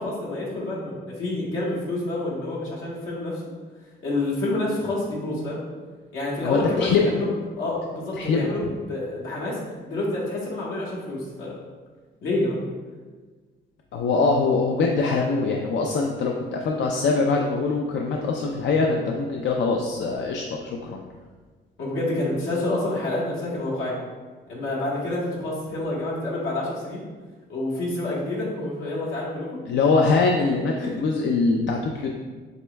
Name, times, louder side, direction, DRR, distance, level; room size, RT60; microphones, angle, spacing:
voice 1, 0.0-3.4 4.0-5.6 6.1-7.3 7.6-9.6 9.9-11.5 12.2-12.6 21.8-24.0 24.5-27.0 27.5-29.6 30.8-30.9, left 2 dB, 85° left, -5 dB, 1.4 m, -28 dB
voice 2, 6.4-7.2 8.1-8.5 13.9-21.0 29.7-32.1, left 4 dB, 65° left, 0 dB, 0.5 m, -23 dB
7.8 x 3.0 x 2.2 m, 1.4 s
cardioid pair, 90°, 20 cm